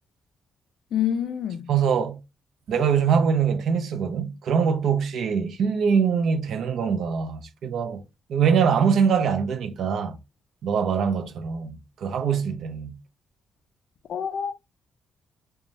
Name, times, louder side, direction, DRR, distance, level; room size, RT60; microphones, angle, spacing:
voice 1, 0.9-1.7 14.1-14.5, left 9 dB, 60° left, 0.3 m, -27 dB
voice 2, 1.7-2.2 2.7-8.0 8.3-10.2 10.6-13.0, right 6 dB, 60° right, 0.4 m, -23 dB
3.0 x 2.2 x 2.6 m
cardioid pair, 170°, 0 cm